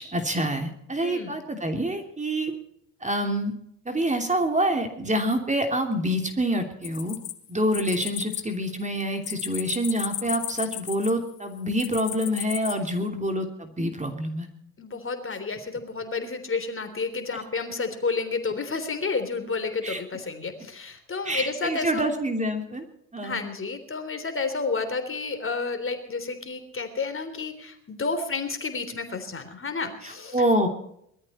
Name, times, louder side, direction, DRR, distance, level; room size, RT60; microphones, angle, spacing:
voice 1, 0.0-2.5 3.0-3.5 3.8-7.2 7.5-14.5 19.8-20.0 21.2-22.8 23.1-23.4 30.0-30.7, right 1 dB, 15° right, 5 dB, 3.1 m, -26 dB
voice 2, 1.0-1.4 14.8-22.1 23.2-30.4, left 4 dB, 30° left, 9 dB, 3.5 m, -31 dB
sound 1, 6.8-8.4 8.7-11.3 11.8-12.7, left 14 dB, 70° left, 1.7 m, -34 dB
21.5 x 13.5 x 4.3 m, 0.74 s
hypercardioid pair, 65°, 40 cm